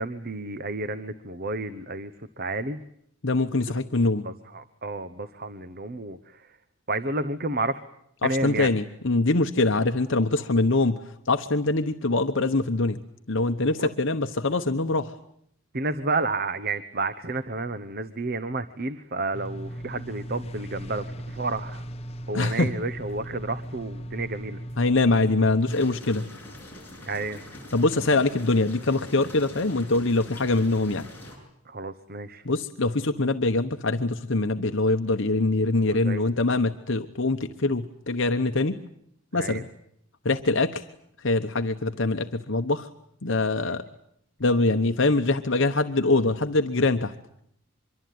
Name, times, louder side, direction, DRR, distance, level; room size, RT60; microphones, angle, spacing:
voice 1, 0.0-2.1 2.4-2.8 4.2-6.5 6.9-7.8 8.2-8.7 13.8-13.9 15.7-21.8 22.3-24.6 27.1-27.4 31.7-32.4 35.9-36.2 39.3-39.6, right 3 dB, 45° right, 12 dB, 1.0 m, -31 dB
voice 2, 3.2-4.2 8.2-13.0 13.3-15.2 22.3-22.7 24.8-26.3 27.7-31.1 32.4-38.8 39.3-39.7 40.2-40.9 41.2-42.9 43.2-43.8 44.4-47.1, left 2 dB, 55° left, 6 dB, 1.0 m, -24 dB
sound 1, 19.3-25.8, right 1 dB, 30° left, 1.1 m, -37 dB
sound 2, 25.7-31.4, left 1 dB, 10° left, 7.8 m, -43 dB
25.0 x 23.5 x 9.4 m, 0.72 s
head